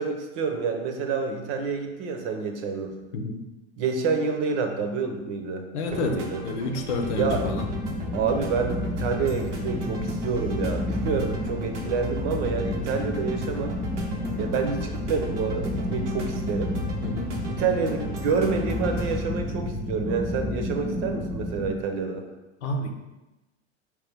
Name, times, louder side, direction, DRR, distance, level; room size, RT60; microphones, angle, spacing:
voice 1, 0.0-2.9 3.8-5.6 5.9-6.4 7.1-7.5 8.1-13.7 14.4-16.8 17.5-22.2, right 5 dB, 55° right, 5 dB, 0.8 m, -28 dB
voice 2, 5.7-6.2 6.4-7.6 17.0-17.4 22.6-22.9, left 3 dB, 75° left, 5 dB, 0.8 m, -29 dB
sound 1, 5.9-19.3, right 2 dB, 90° right, 0.9 m, -38 dB
sound 2, 7.0-21.7, left 1 dB, 5° right, 0.4 m, -31 dB
4.7 x 3.3 x 3.4 m, 1.0 s
hypercardioid pair, 95°, 35 cm